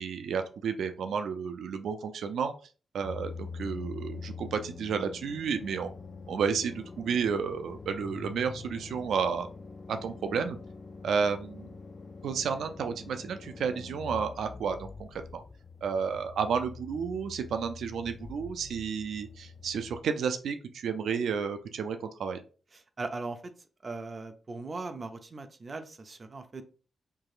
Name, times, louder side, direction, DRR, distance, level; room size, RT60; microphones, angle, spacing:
voice 1, 0.0-2.5 2.9-5.9 6.3-9.5 9.9-10.6 11.0-11.7 12.2-15.4 15.8-22.4, right 6 dB, 85° right, 8 dB, 0.4 m, -31 dB
sound 1, 3.0-20.0, left 4 dB, 35° left, 0.4 m, -45 dB
voice 2, 23.0-23.5 23.8-26.6, right 3 dB, 35° right, 8 dB, 0.5 m, -39 dB
4.6 x 3.0 x 2.4 m, 0.37 s
cardioid pair, 105°, 0 cm